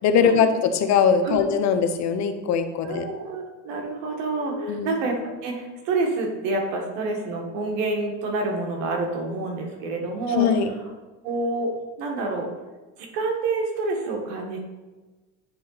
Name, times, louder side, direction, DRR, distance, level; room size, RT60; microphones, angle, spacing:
voice 1, 0.0-3.0 4.3-4.9 10.3-10.7, left 6 dB, 50° left, 8 dB, 0.7 m, -21 dB
voice 2, 2.8-10.5 11.2-11.7 12.0-12.5 13.0-14.6, right 3 dB, 80° right, 2 dB, 1.6 m, -28 dB
9.3 x 3.8 x 4.0 m, 1.2 s
supercardioid pair, 115°, 37 cm